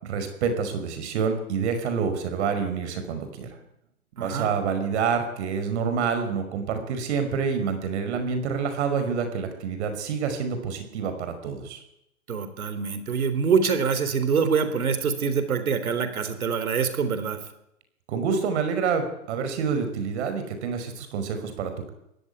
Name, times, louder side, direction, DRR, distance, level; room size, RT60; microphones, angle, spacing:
voice 1, 0.0-3.6 4.2-11.8 18.1-21.9, right 6 dB, 50° right, 8 dB, 5.4 m, -27 dB
voice 2, 4.2-4.5 12.3-17.4, right 6 dB, 70° right, 11 dB, 3.8 m, -25 dB
23.0 x 16.5 x 9.8 m, 0.84 s
hypercardioid pair, 125°, 44 cm